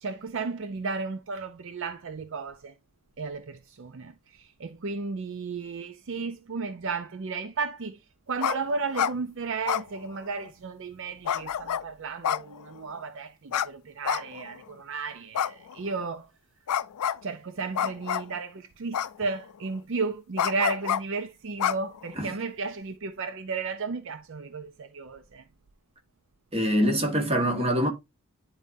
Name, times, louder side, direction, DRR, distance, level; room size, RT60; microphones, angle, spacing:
voice 1, 0.0-2.7 3.2-8.0 8.3-16.3 17.2-25.4, right 4 dB, 55° right, 0.5 m, -34 dB
sound 1, 8.4-8.6 8.8-9.1 9.7-10.5 11.3-11.8 12.2-13.0 13.5-13.7 14.0-14.6 15.3-16.0 16.7-17.2 17.8-18.4 18.9-19.5 20.4-21.0 21.6-22.3, left 9 dB, 90° left, 0.4 m, -28 dB
voice 2, 26.5-27.9, equal, 25° right, 1.5 m, -24 dB
10.5 x 4.1 x 2.6 m
head